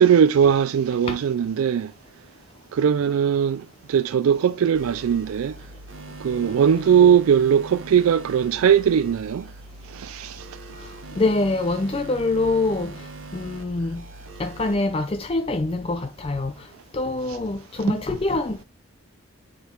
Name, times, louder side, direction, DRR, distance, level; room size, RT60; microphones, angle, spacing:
voice 1, 0.0-1.9 2.7-5.5 6.2-9.4 9.9-10.5 17.3-17.4 17.9-18.0, right 8 dB, 85° right, 0.3 m, -19 dB
sound 1, 4.7-14.7, right 2 dB, 70° right, 1.2 m, -41 dB
voice 2, 11.2-12.9 13.3-14.0 14.4-16.5 16.9-18.6, left 2 dB, 25° left, 0.4 m, -24 dB
9.2 x 3.8 x 4.4 m
head